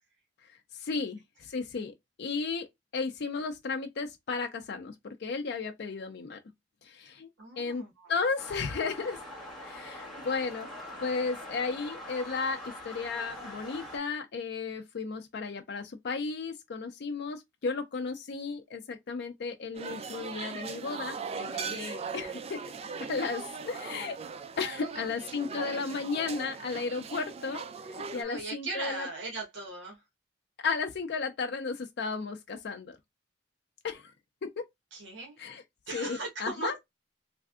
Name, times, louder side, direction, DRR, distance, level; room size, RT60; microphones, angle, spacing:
voice 1, 0.5-2.7 2.9-6.4 6.8-7.3 7.6-9.2 9.6-10.7 11.0-22.6 23.0-24.1 24.6-27.6 28.1-29.1 30.6-33.0 33.8-34.1 34.6-34.7 35.4-35.6 35.9-36.7, left 4 dB, 60° left, 0.4 m, -34 dB
voice 2, 7.4-8.1 23.7-24.0 24.8-25.1 28.1-30.0 34.9-35.4 35.9-36.8, right 3 dB, 70° right, 1.1 m, -38 dB
sound 1, 8.4-14.0, left 1 dB, ahead, 1.2 m, -43 dB
sound 2, 19.7-28.2, right 5 dB, 30° right, 0.3 m, -39 dB
3.3 x 2.5 x 2.3 m
head